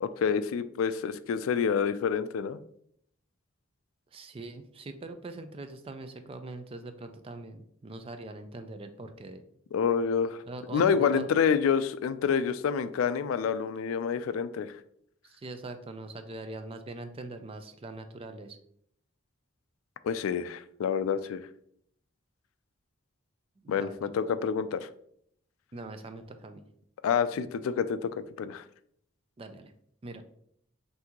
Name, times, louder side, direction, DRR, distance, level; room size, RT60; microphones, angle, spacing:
voice 1, 0.0-2.6 9.7-10.4 10.7-14.7 20.0-21.4 23.7-24.9 27.0-28.6, left 6 dB, 85° left, 13 dB, 0.3 m, -28 dB
voice 2, 4.1-9.4 10.4-11.3 15.2-18.6 23.6-24.1 25.7-26.6 29.4-29.7 30.0-30.2, right 2 dB, 30° right, 8 dB, 0.4 m, -42 dB
5.8 x 2.7 x 2.9 m, 0.68 s
head